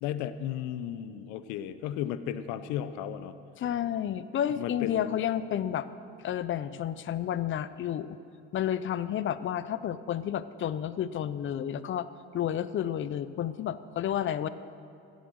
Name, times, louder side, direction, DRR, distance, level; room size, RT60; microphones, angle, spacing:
voice 1, 0.0-3.4 4.6-5.2, left 10 dB, 75° left, 13 dB, 0.8 m, -34 dB
voice 2, 3.6-5.9 6.2-8.2 8.5-12.1 12.3-14.5, left 10 dB, 40° left, 15 dB, 0.6 m, -31 dB
15.5 x 8.1 x 6.4 m, 2.7 s
supercardioid pair, 85°, 30 cm